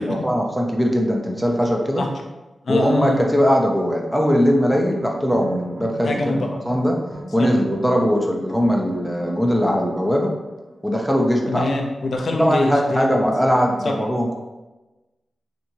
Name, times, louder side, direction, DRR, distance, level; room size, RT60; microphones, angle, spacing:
voice 1, 0.0-2.1 2.7-7.0 7.3-10.3 10.8-11.7 12.4-14.3, equal, ahead, 0 dB, 0.6 m, -20 dB
voice 2, 2.7-3.2 6.0-6.5 7.4-7.5 11.5-13.2 13.8-13.9, left 2 dB, 70° left, 2 dB, 0.5 m, -23 dB
sound 1, 4.3-10.9, right 2 dB, 90° right, 0.8 m, -37 dB
3.4 x 2.9 x 2.8 m, 1.1 s
cardioid pair, 75°, 0 cm